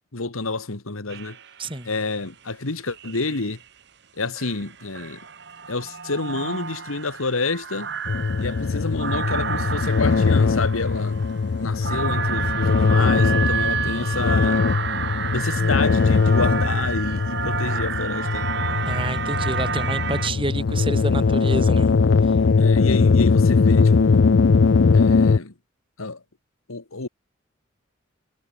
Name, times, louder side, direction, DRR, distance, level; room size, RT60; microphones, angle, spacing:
voice 1, 0.1-1.4 1.8-3.6 4.2-5.2 5.7-7.9 8.4-11.2 11.6-14.6 15.3-18.5 22.6-24.2 24.9-25.5 26.0-26.2 26.7-27.1, left 3 dB, 80° left, 1.7 m, -28 dB
sound 1, 1.1-1.9 2.9-3.6 4.4-20.3, right 6 dB, 55° right, 1.5 m, -30 dB
sound 2, 8.1-25.4, left 4 dB, 55° left, 0.4 m, -20 dB
voice 2, 18.9-22.0 22.3-22.4, right 2 dB, 25° right, 3.7 m, -28 dB
head